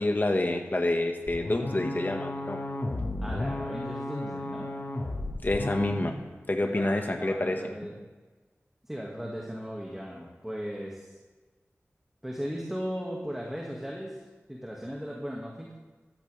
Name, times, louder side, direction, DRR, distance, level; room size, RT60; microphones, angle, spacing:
voice 1, 0.0-2.6 5.4-6.1 6.5-7.6, left 2 dB, 40° left, 4 dB, 1.6 m, -27 dB
sound 1, 1.3-6.1, left 2 dB, 60° left, 1.6 m, -34 dB
voice 2, 3.2-4.7 6.6-8.0 8.8-11.1 12.2-15.7, equal, 5° right, -2 dB, 2.0 m, -37 dB
13.5 x 13.0 x 3.4 m, 1.3 s
wide cardioid pair, 50°, 5 cm